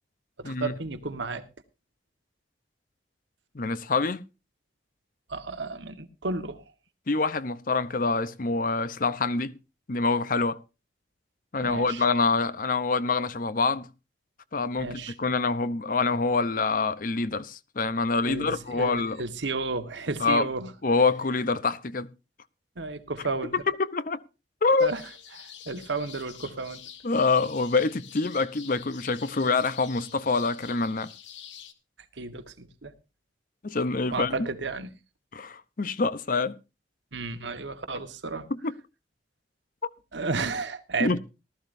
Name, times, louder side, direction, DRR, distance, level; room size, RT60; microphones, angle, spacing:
voice 1, 0.4-1.5 5.3-6.6 11.6-12.0 14.8-15.1 18.3-20.7 22.8-23.5 24.8-25.0 25.3-26.8 32.1-32.9 34.1-34.9 37.1-38.5 40.1-41.2, right 3 dB, 75° right, 1.4 m, -33 dB
voice 2, 3.5-4.3 7.1-9.6 9.9-10.6 11.5-13.9 14.5-19.2 20.2-20.5 20.8-22.1 23.8-24.2 24.6-24.9 27.0-31.1 33.6-34.5 35.3-36.6 38.5-38.7 41.0-41.2, left 3 dB, 45° left, 0.7 m, -26 dB
sound 1, 24.8-31.7, left 9 dB, 75° left, 1.3 m, -47 dB
19.0 x 13.0 x 2.6 m
head